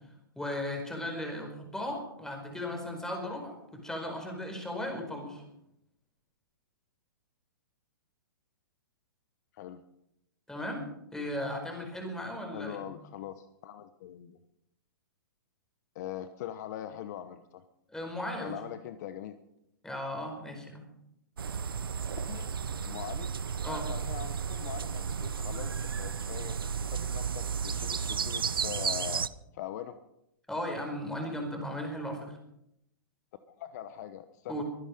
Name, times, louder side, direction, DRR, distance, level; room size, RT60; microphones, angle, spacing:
voice 1, 0.3-5.4 10.5-10.9 11.1-12.9 17.9-18.5 19.8-20.8 23.6-23.9 30.5-32.4 34.5-34.6, left 1 dB, 5° left, 3 dB, 4.7 m, -36 dB
voice 2, 12.5-14.4 15.9-17.6 18.4-19.4 22.3-22.5 22.8-23.3 23.7-26.6 26.9-29.3 29.5-30.0 33.5-34.6, left 11 dB, 50° left, 11 dB, 1.0 m, -42 dB
sound 1, 21.4-29.3, right 6 dB, 90° right, 0.7 m, -33 dB
24.0 x 10.0 x 5.2 m, 0.79 s
hypercardioid pair, 130°, 12 cm